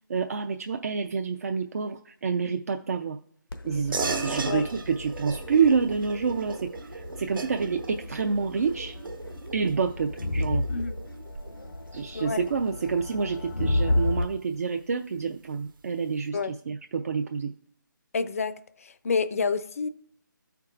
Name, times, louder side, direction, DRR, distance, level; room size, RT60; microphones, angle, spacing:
voice 1, 0.1-3.2 3.6-9.0 9.5-10.6 11.9-17.5, right 5 dB, 45° right, 0.4 m, -28 dB
Crowd, 3.5-14.3, left 2 dB, 85° left, 0.8 m, -33 dB
sound 1, 3.9-13.8, right 3 dB, 75° right, 1.1 m, -37 dB
voice 2, 18.1-19.9, left 5 dB, 40° left, 0.4 m, -29 dB
13.5 x 4.5 x 2.4 m
hypercardioid pair, 165°, 11 cm